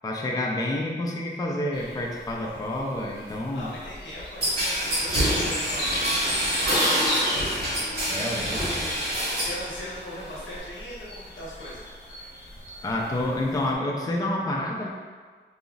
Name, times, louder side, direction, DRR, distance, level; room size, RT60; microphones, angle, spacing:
voice 1, 0.0-3.7 7.3-7.4 8.1-8.6 12.8-14.9, left 1 dB, 20° left, -1 dB, 0.4 m, -28 dB
sound 1, 1.7-13.7, left 1 dB, 65° left, 0.7 m, -36 dB
voice 2, 3.5-7.4 7.9-8.6 9.3-11.8, left 1 dB, 90° left, -7 dB, 1.0 m, -40 dB
sound 2, 4.4-9.6 10.0-10.6, equal, 60° right, 1.3 m, -26 dB
5.2 x 2.0 x 2.3 m, 1.5 s
wide cardioid pair, 85°, 19 cm